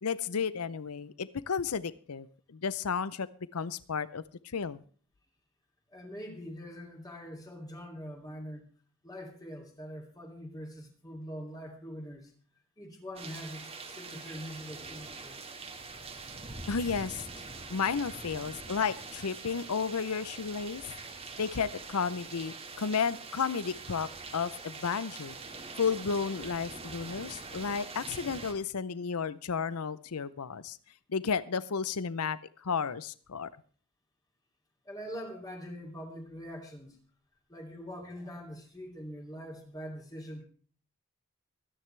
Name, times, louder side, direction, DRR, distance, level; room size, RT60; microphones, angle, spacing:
voice 1, 0.0-3.3 3.5-4.2 4.5-4.8 16.7-17.4 17.7-20.9 21.4-25.4 25.8-30.8 31.1-33.5, left 6 dB, 85° left, 17 dB, 0.6 m, -33 dB
voice 2, 5.9-8.7 9.0-12.3 12.8-15.4 16.5-16.7 34.8-37.0 37.5-40.4, equal, 15° left, 1 dB, 2.7 m, -43 dB
sound 1, 13.2-28.5, right 3 dB, 25° right, 2.0 m, -44 dB
24.0 x 10.0 x 3.3 m, 0.43 s
head